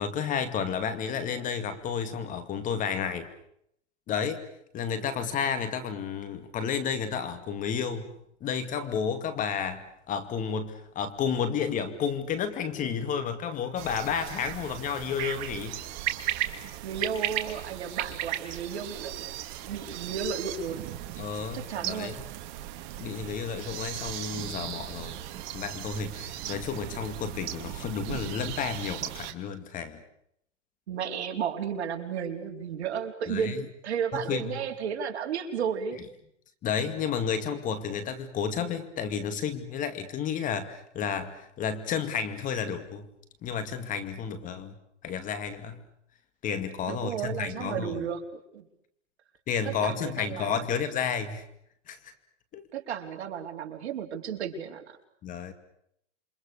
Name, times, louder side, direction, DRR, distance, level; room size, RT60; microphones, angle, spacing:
voice 1, 0.0-3.3 4.1-4.5 4.7-8.1 8.4-9.8 10.1-15.8 21.2-22.2 23.0-25.2 25.5-30.0 33.3-33.6 34.1-34.6 36.6-43.1 43.4-44.7 45.0-45.8 46.4-48.0 49.5-51.5 51.9-52.1 52.5-52.7 55.2-55.5, left 7 dB, 20° left, 10 dB, 2.3 m, -31 dB
sound 1, 13.8-29.3, right 13 dB, 35° right, 2.5 m, -36 dB
voice 2, 16.8-19.2 19.6-20.9 21.5-22.1 30.9-36.0 44.5-44.6 46.9-48.7 49.6-50.6 52.7-55.0, right 7 dB, 60° right, 3 dB, 4.6 m, -33 dB
28.5 x 25.5 x 6.8 m, 0.72 s
hypercardioid pair, 145°, 36 cm